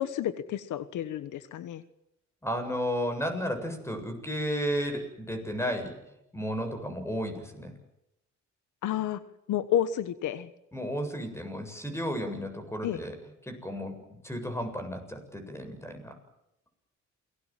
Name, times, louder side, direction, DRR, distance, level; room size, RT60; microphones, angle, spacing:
voice 1, 0.0-1.8 8.8-9.2 9.5-10.5 12.8-13.0, left 11 dB, 80° left, 13 dB, 1.4 m, -30 dB
voice 2, 2.4-6.0 6.3-7.7 10.7-13.1 13.4-14.0 14.2-16.2, equal, 10° left, 7 dB, 7.7 m, -33 dB
28.5 x 20.0 x 7.6 m, 0.87 s
cardioid pair, 90°, 30 cm